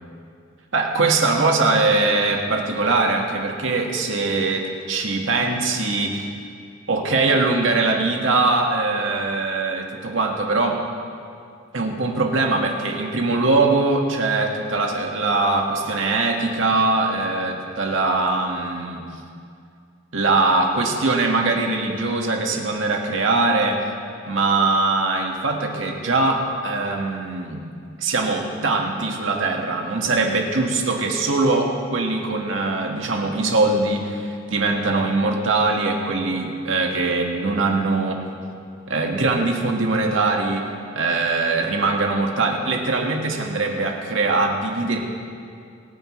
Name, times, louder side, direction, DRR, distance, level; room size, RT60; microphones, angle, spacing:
voice 1, 0.7-6.3 6.9-10.8 11.7-19.0 20.1-23.8 24.3-27.6 28.0-38.2 38.9-40.7 40.9-45.0, right 3 dB, 80° right, 1 dB, 1.8 m, -22 dB
25.5 x 9.6 x 3.2 m, 2.3 s
head